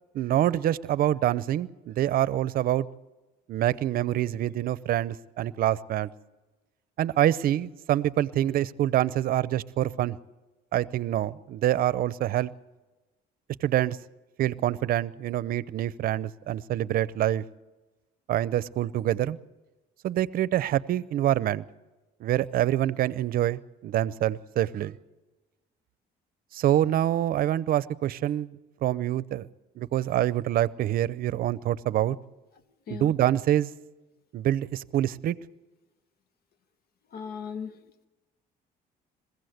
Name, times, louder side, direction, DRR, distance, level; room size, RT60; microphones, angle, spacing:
voice 1, 0.1-2.9 3.5-6.1 7.0-10.2 10.7-12.5 13.6-14.0 14.4-17.4 18.3-19.4 20.0-21.6 22.2-25.0 26.5-29.5 29.8-32.2 32.9-33.7 34.3-35.4, right 12 dB, 60° right, 0.6 m, -26 dB
voice 2, 37.1-37.8, left 6 dB, 65° left, 1.1 m, -37 dB
21.5 x 16.0 x 7.9 m
cardioid pair, 110°, 17 cm